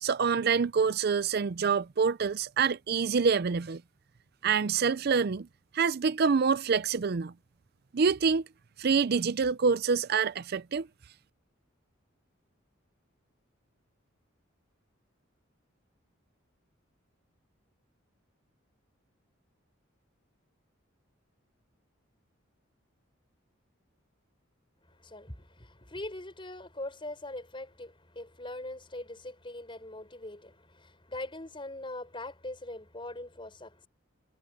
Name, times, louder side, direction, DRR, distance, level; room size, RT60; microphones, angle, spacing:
voice 1, 0.0-3.8 4.4-5.5 5.7-7.3 7.9-8.4 8.8-10.9, right 5 dB, 50° right, 0.5 m, -26 dB
voice 2, 24.9-33.9, left 1 dB, 25° left, 5.6 m, -42 dB
head